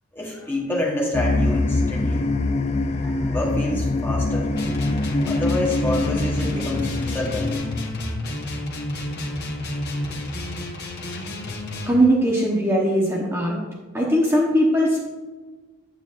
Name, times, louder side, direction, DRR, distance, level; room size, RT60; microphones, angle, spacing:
voice 1, 0.1-2.3 2.9-4.5 5.2-7.6, left 1 dB, 10° left, -2 dB, 1.3 m, -28 dB
sound 1, 1.1-7.9, left 2 dB, 30° left, 0.3 m, -24 dB
sound 2, 4.5-12.0, left 1 dB, 50° left, 1.1 m, -30 dB
voice 2, 11.9-13.6 13.9-15.0, equal, 10° right, -3 dB, 1.0 m, -19 dB
9.2 x 7.9 x 2.6 m, 1.3 s
head